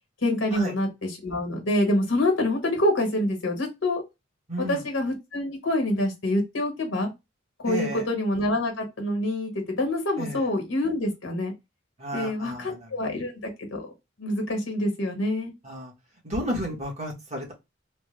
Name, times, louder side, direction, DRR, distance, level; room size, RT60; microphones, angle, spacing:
voice 1, 0.2-4.0 4.7-7.1 7.6-11.5 12.1-13.4 13.7-13.9 14.2-15.5, left 1 dB, 80° left, 2 dB, 1.3 m, -26 dB
voice 2, 4.5-4.8 7.6-8.1 10.2-10.5 12.0-12.9 15.6-15.9 16.2-17.5, equal, 35° right, -1 dB, 1.2 m, -32 dB
3.3 x 2.2 x 3.2 m, 0.22 s
head